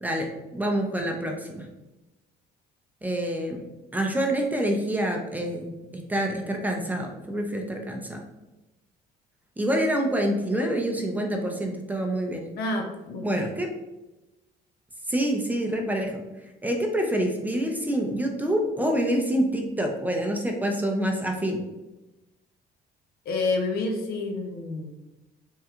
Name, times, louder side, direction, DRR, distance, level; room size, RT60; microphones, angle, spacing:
voice 1, 0.0-1.7 3.0-3.6 3.9-5.7 6.1-8.2 9.6-12.5 13.2-13.7 15.1-16.2 16.6-21.6, right 1 dB, 10° right, 1 dB, 0.4 m, -27 dB
voice 2, 12.5-13.5 23.3-24.9, left 2 dB, 70° left, 3 dB, 0.6 m, -29 dB
3.5 x 2.2 x 2.9 m, 1.0 s
cardioid pair, 110°, 17 cm